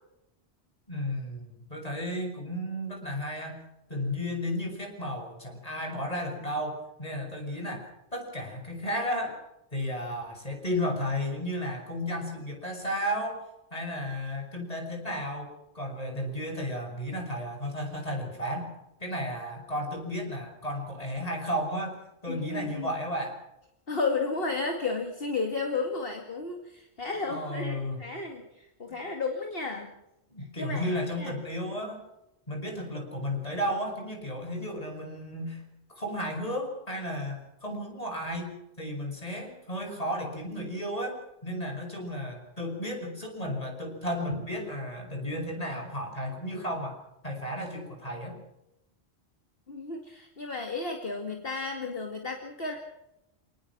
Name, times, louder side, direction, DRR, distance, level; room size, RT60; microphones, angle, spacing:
voice 1, 0.9-3.6 3.9-7.9 8.1-9.4 9.7-13.4 13.7-18.7 19.0-22.0 22.2-23.4 27.3-28.0 30.3-32.0 32.5-35.6 35.9-48.4, equal, 35° left, 3 dB, 6.5 m, -33 dB
voice 2, 22.3-22.9 23.9-29.9 30.6-31.3 49.7-52.8, left 3 dB, 60° left, 3 dB, 2.5 m, -33 dB
28.5 x 19.0 x 6.1 m, 0.88 s
omnidirectional pair, 1.1 m